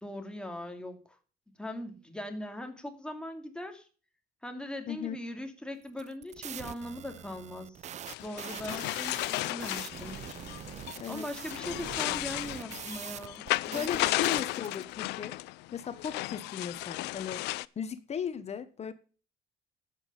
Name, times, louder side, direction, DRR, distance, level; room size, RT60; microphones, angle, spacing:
voice 1, 0.0-1.2 1.6-3.9 4.4-7.9 8.2-10.2 11.1-13.9, left 1 dB, 5° left, 2.6 m, -40 dB
voice 2, 4.9-5.2 11.0-11.3 13.7-15.4 15.7-17.5 17.8-18.9, left 7 dB, 40° left, 1.3 m, -37 dB
sound 1, 5.9-14.8, right 9 dB, 45° right, 0.6 m, -44 dB
sound 2, 8.1-17.6, left 20 dB, 90° left, 0.5 m, -34 dB
11.5 x 8.7 x 5.6 m
cardioid pair, 110°, 17 cm